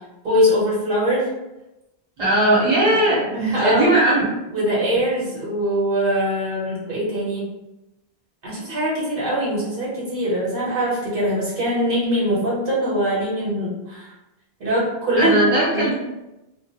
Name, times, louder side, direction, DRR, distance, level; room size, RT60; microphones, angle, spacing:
voice 1, 0.2-1.3 2.8-3.0 3.3-3.9 4.5-7.5 8.4-14.1 14.6-15.9, equal, 60° right, -6 dB, 1.0 m, -22 dB
voice 2, 2.2-4.3 15.2-15.9, right 1 dB, 35° right, -6 dB, 0.8 m, -18 dB
2.4 x 2.1 x 2.7 m, 0.95 s
omnidirectional pair, 1.1 m